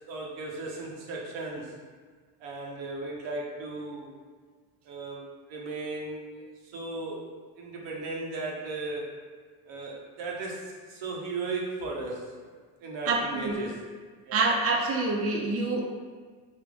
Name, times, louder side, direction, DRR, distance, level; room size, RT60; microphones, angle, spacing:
voice 1, 0.1-1.7 2.4-4.1 4.9-5.2 5.5-6.4 6.7-7.3 7.6-9.1 9.7-12.3 12.8-13.7 14.2-14.4, right 3 dB, 75° right, -2 dB, 0.9 m, -36 dB
voice 2, 13.1-13.6 14.3-15.8, right 3 dB, 35° right, 0 dB, 0.6 m, -26 dB
3.4 x 2.4 x 3.7 m, 1.5 s
supercardioid pair, 70°, 44 cm